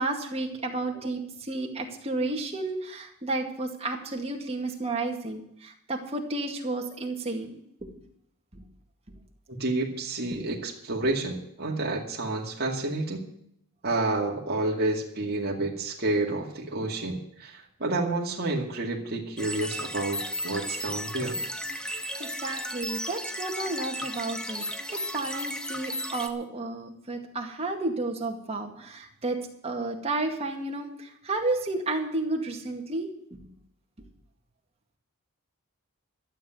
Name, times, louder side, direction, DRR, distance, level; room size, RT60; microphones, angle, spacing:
voice 1, 0.0-7.6 8.5-8.6 21.8-24.6 25.1-29.4 29.6-33.4, right 2 dB, 30° right, 2 dB, 2.1 m, -32 dB
voice 2, 9.5-13.2 13.8-21.4, right 2 dB, 45° right, -2 dB, 2.3 m, -29 dB
sound 1, 19.4-26.3, equal, 5° left, 1.0 m, -34 dB
13.0 x 7.6 x 9.3 m, 0.71 s
head